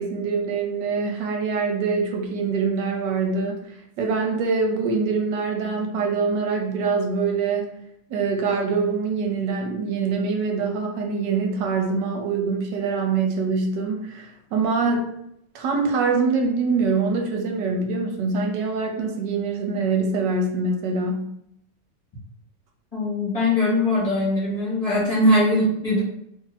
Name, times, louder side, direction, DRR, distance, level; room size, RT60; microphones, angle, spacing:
voice 1, 0.0-3.6 4.0-7.7 8.1-15.1 15.5-21.3, right 4 dB, 80° right, 2 dB, 1.3 m, -24 dB
voice 2, 22.9-26.0, left 1 dB, 25° left, -9 dB, 1.2 m, -21 dB
2.9 x 2.7 x 4.0 m, 0.76 s
omnidirectional pair, 1.9 m